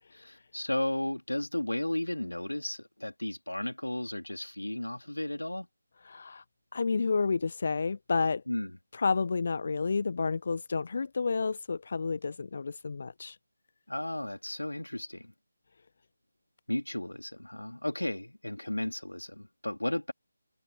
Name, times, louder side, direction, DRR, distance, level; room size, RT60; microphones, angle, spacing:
voice 1, 0.2-5.7 8.5-8.7 13.9-15.3 16.7-20.1, left 1 dB, 80° left, 3.4 m, -34 dB
voice 2, 6.0-6.4 6.7-8.4 8.9-13.4, left 4 dB, 45° left, 0.7 m, -30 dB
figure-of-eight pair, 155°, 0 cm